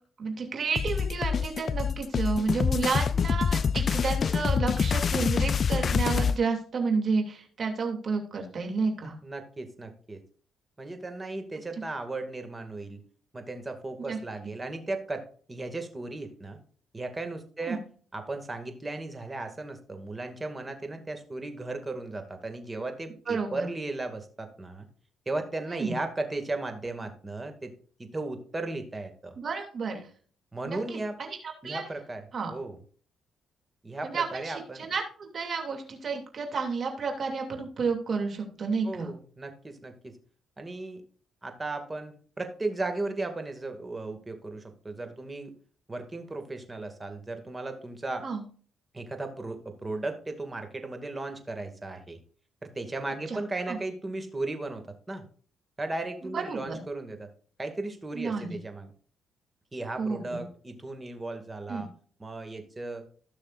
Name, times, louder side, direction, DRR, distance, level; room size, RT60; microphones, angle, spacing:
voice 1, 0.2-9.1 14.1-14.2 17.6-17.8 23.3-23.7 25.7-25.9 29.4-30.1 30.6-31.4 31.6-31.9 32.3-32.5 34.0-39.1 48.2-48.4 53.3-53.8 56.3-56.8 58.1-58.6 60.0-60.4 61.7-61.9, right 4 dB, 50° right, 3 dB, 2.7 m, -31 dB
sound 1, 0.7-6.4, left 6 dB, 45° left, 0.3 m, -26 dB
voice 2, 9.2-10.2 10.8-13.0 13.3-16.6 16.9-17.8 18.1-24.9 25.3-27.7 28.0-29.4 30.5-31.2 31.6-32.8 33.8-34.9 38.8-40.2 40.6-41.0 41.4-45.5 45.9-48.3 48.9-52.2 52.6-55.2 55.8-57.3 57.6-58.9 59.7-61.9 62.2-63.1, right 2 dB, 20° right, 6 dB, 2.2 m, -36 dB
16.5 x 6.4 x 2.6 m, 0.43 s
cardioid pair, 90°, 0 cm